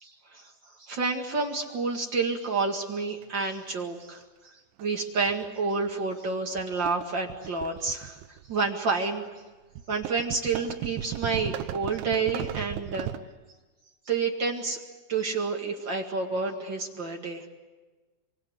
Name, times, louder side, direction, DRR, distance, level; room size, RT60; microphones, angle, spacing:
voice 1, 0.8-4.2 4.8-8.2 8.5-9.2 9.9-13.1 14.1-14.8 15.1-17.5, right 4 dB, 55° right, 1 dB, 1.3 m, -29 dB
sound 1, 3.2-3.3 4.8-5.0 5.3-5.5 6.1-6.3 6.6-8.7 9.8-13.2, right 12 dB, 80° right, 3.2 m, -36 dB
26.5 x 24.0 x 8.1 m, 1.2 s
omnidirectional pair, 5.5 m